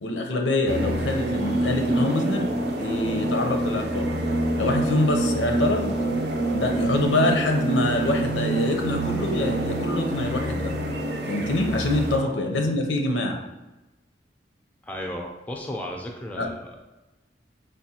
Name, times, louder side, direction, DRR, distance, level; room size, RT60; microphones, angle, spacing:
voice 1, 0.0-2.5 2.8-4.1 4.6-5.9 6.5-10.7 11.3-13.4 16.4-16.5, left 2 dB, 85° left, 3 dB, 0.6 m, -25 dB
sound 1, 0.7-12.2, right 1 dB, 60° right, 0.5 m, -26 dB
voice 2, 14.8-16.8, left 1 dB, 10° left, 0 dB, 0.3 m, -34 dB
4.9 x 2.1 x 2.8 m, 1.0 s
head